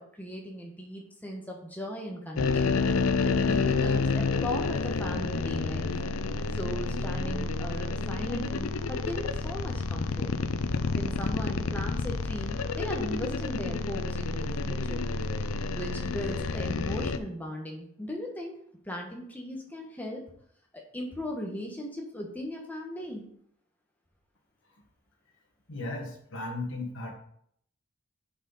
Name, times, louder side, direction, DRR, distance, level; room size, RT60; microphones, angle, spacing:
voice 1, 0.0-2.8 3.2-5.9 6.5-10.3 10.9-15.0 15.7-18.6 18.8-20.2 20.7-23.2, left 1 dB, 10° left, -1 dB, 1.4 m, -37 dB
sound 1, 2.4-17.2, left 4 dB, 85° left, 0.6 m, -29 dB
voice 2, 25.7-27.1, left 2 dB, 65° left, 0 dB, 1.7 m, -36 dB
10.0 x 5.3 x 4.2 m, 0.67 s
head